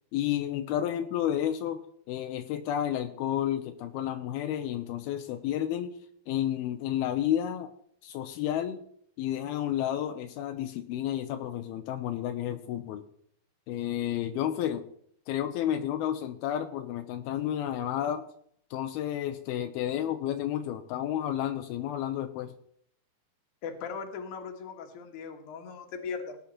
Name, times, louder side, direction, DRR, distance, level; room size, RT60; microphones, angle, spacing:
voice 1, 0.1-6.0 6.3-7.7 8.0-8.8 9.2-13.1 13.7-14.9 15.3-18.3 18.7-22.5, left 11 dB, 85° left, 8 dB, 2.6 m, -31 dB
voice 2, 23.6-26.4, left 5 dB, 60° left, 4 dB, 2.7 m, -38 dB
17.5 x 9.8 x 4.2 m, 0.65 s
omnidirectional pair, 4.5 m